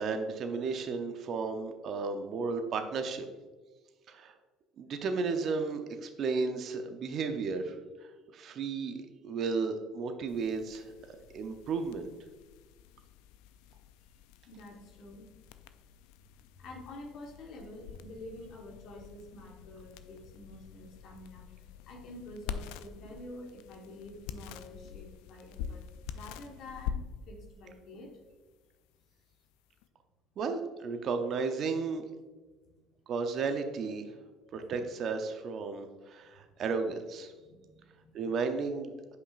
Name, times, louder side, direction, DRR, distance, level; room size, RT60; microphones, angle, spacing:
voice 1, 0.0-3.3 4.1-4.3 4.8-7.8 8.3-10.9 11.3-12.1 30.4-32.0 33.1-34.1 34.5-37.3 38.1-39.2, right 4 dB, 55° right, 6 dB, 0.7 m, -33 dB
sound 1, 10.3-29.9, left 8 dB, 80° left, 0.3 m, -46 dB
voice 2, 14.5-15.3 16.6-21.5 21.9-25.8 26.1-28.2 37.4-38.3, left 1 dB, 65° left, 1 dB, 1.3 m, -48 dB
7.9 x 5.5 x 2.5 m, 1.3 s
hypercardioid pair, 70°, 0 cm